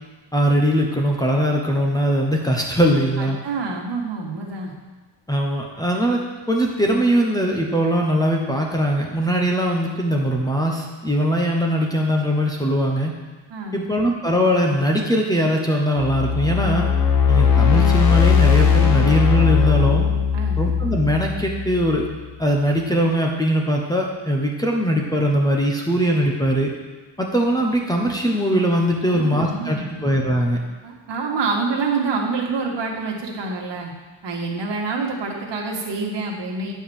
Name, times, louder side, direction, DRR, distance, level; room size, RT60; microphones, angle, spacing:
voice 1, 0.3-3.4 5.3-6.2 6.5-13.1 13.7-16.9 17.3-20.0 20.6-22.1 22.4-26.7 27.2-30.6, equal, 10° left, 0 dB, 1.0 m, -21 dB
voice 2, 3.2-4.7 13.5-13.9 20.3-20.7 29.0-30.0 30.8-33.9 34.2-36.7, right 4 dB, 65° right, -1 dB, 1.8 m, -27 dB
sound 1, 16.0-22.2, left 7 dB, 50° left, 1.0 m, -18 dB
9.8 x 4.7 x 7.1 m, 1.3 s
wide cardioid pair, 145°, 45 cm